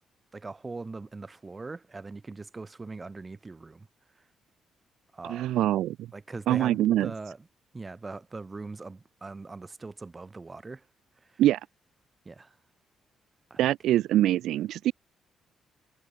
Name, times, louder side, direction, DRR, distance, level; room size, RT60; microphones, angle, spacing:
voice 1, 0.3-3.9 5.1-5.5 6.1-7.5 7.7-10.8 11.3-11.4 12.2-12.5 13.5-13.6, right 3 dB, 25° right, 4.4 m, -41 dB
voice 2, 5.3-6.1 6.5-7.1 11.4-11.6 13.6-14.9, right 13 dB, 85° right, 0.4 m, -24 dB
cardioid pair, 90°, 0 cm